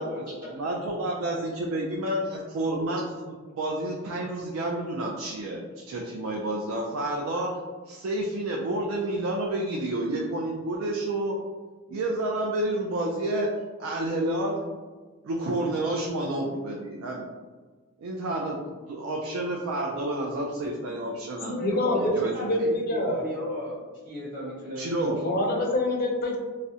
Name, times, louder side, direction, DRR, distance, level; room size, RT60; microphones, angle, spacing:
voice 1, 0.0-0.5 21.4-23.8 24.0-25.6, equal, 40° right, -10 dB, 0.6 m, -36 dB
voice 2, 0.5-3.1 3.6-7.5 7.9-11.4 11.9-13.5 13.8-14.6 15.2-17.3 18.0-21.7 22.1-22.5 24.8-25.2, right 1 dB, 80° right, -1 dB, 0.3 m, -29 dB
voice 3, 21.6-22.1 22.4-23.3 25.2-26.4, left 2 dB, 45° left, 0 dB, 0.4 m, -25 dB
2.3 x 2.0 x 2.6 m, 1.4 s
head